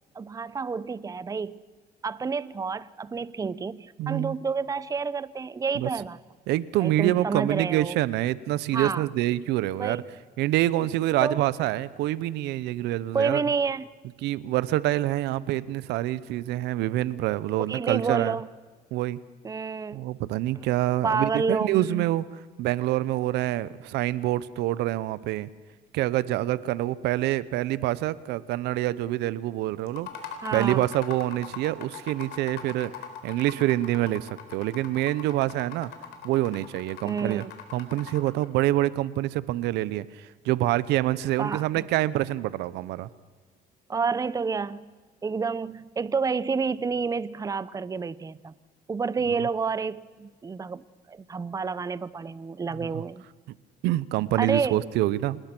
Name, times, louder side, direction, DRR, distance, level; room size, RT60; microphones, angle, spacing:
voice 1, 0.1-1.6 2.0-6.2 6.8-8.0 8.7-9.1 9.8-10.1 11.2-11.4 13.1-13.9 17.7-18.5 19.4-20.0 21.0-22.1 30.4-30.8 37.0-37.5 41.4-41.6 43.9-44.8 45.2-48.5 48.9-53.2 54.4-54.8, right 5 dB, 20° right, 18 dB, 0.7 m, -29 dB
voice 2, 4.0-4.3 5.7-5.9 6.5-10.0 10.4-13.4 14.2-18.4 18.9-19.2 19.9-22.2 22.6-25.5 25.9-30.1 30.5-32.9 33.2-35.9 36.2-37.4 37.7-43.1 52.8-53.0 53.8-55.4, right 15 dB, 85° right, 18 dB, 0.8 m, -26 dB
sound 1, 29.9-38.5, left 8 dB, 85° left, 3.9 m, -41 dB
26.5 x 20.5 x 6.1 m, 1.4 s
cardioid pair, 110°, 17 cm